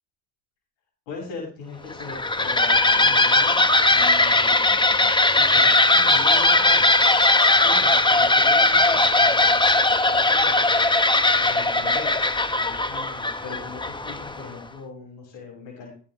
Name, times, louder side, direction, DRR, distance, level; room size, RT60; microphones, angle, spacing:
voice 1, 1.1-5.0 5.4-6.9 7.6-9.8 10.1-10.7 11.4-15.9, left 4 dB, 80° left, -1 dB, 5.6 m, -39 dB
sound 1, 1.9-14.5, left 2 dB, 10° left, 1.1 m, -19 dB
18.0 x 7.6 x 3.1 m, 0.42 s
hypercardioid pair, 65°, 43 cm